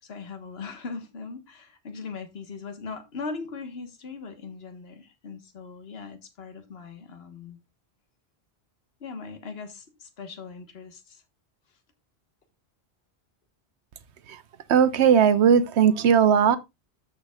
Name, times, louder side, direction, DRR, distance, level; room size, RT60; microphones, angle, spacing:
voice 1, 0.0-7.6 9.0-11.2, left 4 dB, 65° left, 1.5 m, -39 dB
voice 2, 14.7-16.6, right 7 dB, 80° right, 1.1 m, -18 dB
13.5 x 5.3 x 2.3 m
omnidirectional pair, 1.1 m